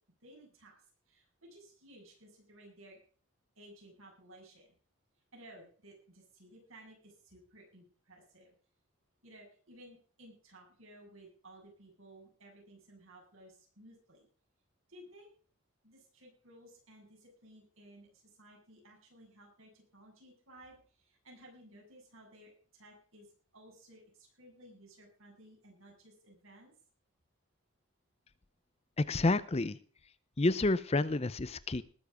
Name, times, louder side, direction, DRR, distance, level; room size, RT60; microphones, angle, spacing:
voice 1, 0.2-0.8 1.1-3.0 3.6-4.7 5.3-8.5 9.2-14.3 14.9-15.3 15.8-26.7, right 1 dB, 70° right, 0 dB, 7.8 m, -57 dB
voice 2, 29.0-29.8 30.4-31.8, left 2 dB, 30° left, 16 dB, 0.6 m, -29 dB
19.5 x 7.3 x 5.0 m, 0.43 s
head